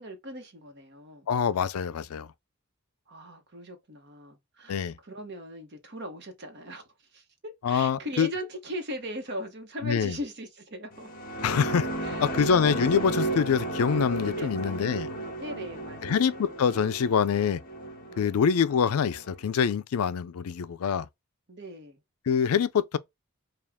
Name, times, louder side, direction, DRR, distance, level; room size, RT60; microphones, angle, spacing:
voice 1, 0.0-1.3 3.1-6.8 7.1-11.1 12.0-12.3 14.3-14.6 15.4-16.4 18.1-18.3 21.5-22.0, equal, 50° right, 1.0 m, -39 dB
voice 2, 1.3-2.3 4.7-4.9 7.6-8.3 9.8-10.2 11.4-11.9 12.2-15.1 16.0-17.6 18.2-21.1 22.3-23.0, left 7 dB, 75° left, 0.4 m, -25 dB
sound 1, 10.9-19.6, right 2 dB, 40° left, 1.3 m, -34 dB
4.8 x 2.4 x 3.5 m
head